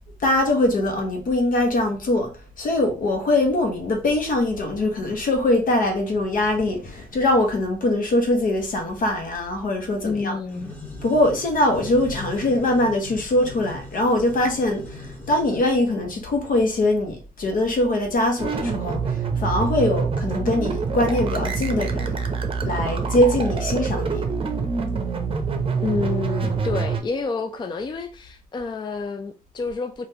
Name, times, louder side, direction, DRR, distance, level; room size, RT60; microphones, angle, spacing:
voice 1, 0.2-2.3 2.6-10.4 11.0-22.2 22.6-24.2, left 1 dB, 70° left, 1.0 m, -22 dB
voice 2, 10.0-10.7 25.8-30.1, left 4 dB, 30° left, 0.4 m, -29 dB
sound 1, 10.5-15.6, left 2 dB, 15° left, 1.6 m, -39 dB
sound 2, 18.4-27.0, right 5 dB, 40° right, 0.6 m, -26 dB
3.3 x 2.5 x 2.8 m
cardioid pair, 90°, 15 cm